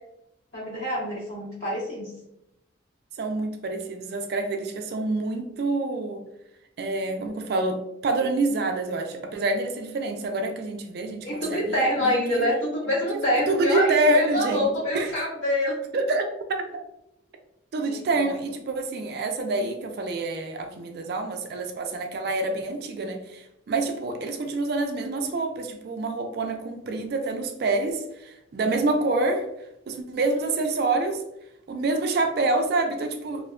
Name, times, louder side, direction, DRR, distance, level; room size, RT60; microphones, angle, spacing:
voice 1, 0.5-2.1 11.2-15.8 17.8-18.3, left 1 dB, 65° left, -8 dB, 1.4 m, -26 dB
voice 2, 3.2-6.2 6.8-12.5 13.1-15.1 15.9-16.8 17.7-29.5 29.9-31.2 31.7-33.5, right 2 dB, 50° right, 4 dB, 0.3 m, -27 dB
2.6 x 2.2 x 2.4 m, 0.84 s
head